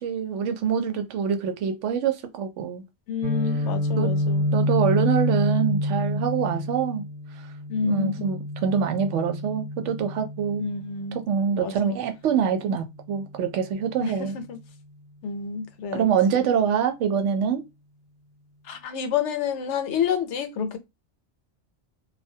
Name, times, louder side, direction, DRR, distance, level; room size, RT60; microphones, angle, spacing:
voice 1, 0.0-2.8 4.0-4.1 4.5-7.0 7.8-10.7 11.1-14.4 15.9-17.6, right 7 dB, 80° right, 0.9 m, -25 dB
voice 2, 3.1-4.5 7.7-8.3 10.6-11.2 11.6-12.0 14.0-14.6 15.2-16.0 18.7-20.8, left 6 dB, 75° left, 0.9 m, -29 dB
Guitar, 3.2-11.1, left 1 dB, 50° right, 0.8 m, -28 dB
2.2 x 2.1 x 2.6 m
omnidirectional pair, 1.2 m